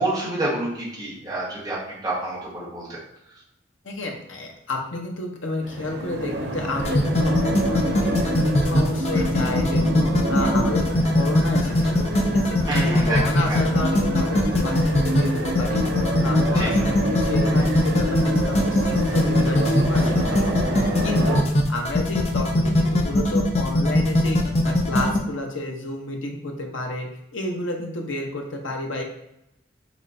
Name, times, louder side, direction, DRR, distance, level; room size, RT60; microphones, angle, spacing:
voice 1, 0.0-2.9 12.7-13.6 16.5-16.7, right 1 dB, 20° right, -7 dB, 1.4 m, -28 dB
voice 2, 3.8-15.9 16.2-20.6 20.8-21.4 21.7-29.0, left 2 dB, 85° left, 1 dB, 0.9 m, -31 dB
sound 1, 5.6-21.4, right 1 dB, 60° right, 0.6 m, -28 dB
sound 2, 6.8-25.2, left 1 dB, 35° left, 0.5 m, -20 dB
6.0 x 3.2 x 2.7 m, 0.84 s
head